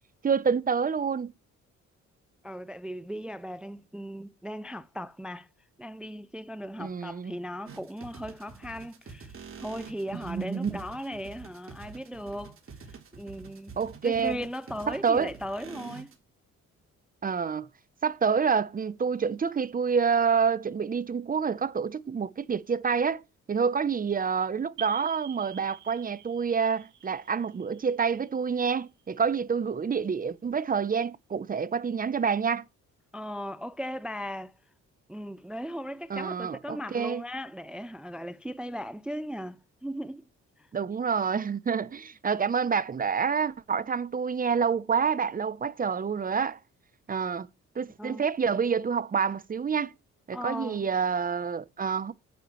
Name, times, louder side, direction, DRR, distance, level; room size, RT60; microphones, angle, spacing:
voice 1, 0.2-1.3 6.8-7.4 10.1-10.8 13.8-14.4 14.9-15.3 17.2-17.7 18.0-23.2 23.5-32.6 36.1-37.2 40.7-46.6 47.1-47.5 47.8-49.9 50.3-52.1, right 6 dB, 30° right, 0.7 m, -28 dB
voice 2, 2.4-5.5 5.8-13.7 14.0-16.1 33.1-34.5 35.1-40.3 40.6-40.7 48.0-48.2 50.3-50.8, equal, 5° right, 0.4 m, -37 dB
sound 1, 7.7-16.1, right 5 dB, 45° right, 3.7 m, -46 dB
sound 2, 24.8-29.2, right 11 dB, 70° right, 1.7 m, -48 dB
9.4 x 8.4 x 3.1 m
cardioid pair, 90°, 30 cm